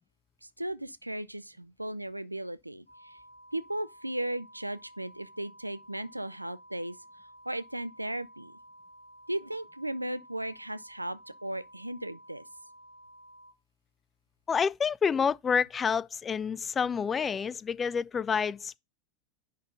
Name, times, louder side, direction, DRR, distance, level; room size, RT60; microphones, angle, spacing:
voice 1, 0.6-3.2 3.5-7.0 7.5-8.5 9.3-12.4, right 1 dB, 90° right, 0.5 m, -36 dB
sound 1, 2.9-13.5, right 1 dB, 80° left, 2.0 m, -54 dB
voice 2, 14.5-18.8, left 6 dB, 20° left, 0.4 m, -28 dB
10.5 x 3.6 x 5.4 m
figure-of-eight pair, 85°, 0 cm